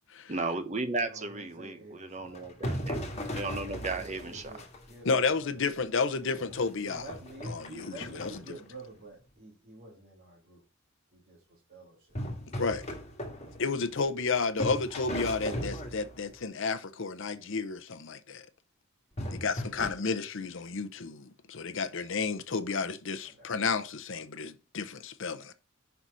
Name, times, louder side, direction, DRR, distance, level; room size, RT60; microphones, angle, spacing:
voice 1, 0.3-4.6, right 3 dB, 35° right, 1.0 m, -35 dB
voice 2, 1.1-2.7 4.0-4.6 4.9-5.5 6.8-10.6 11.1-12.0 23.4-23.5, right 2 dB, 50° right, 1.7 m, -49 dB
sound 1, 2.2-5.1 5.6-5.7 6.2-8.5 12.2-14.3 14.6-16.4 19.2-19.9, equal, 30° left, 1.6 m, -37 dB
voice 3, 5.0-7.1 7.4-8.3 12.6-12.9 13.6-18.4 19.3-25.5, left 4 dB, 65° left, 0.7 m, -31 dB
5.7 x 4.0 x 6.1 m
head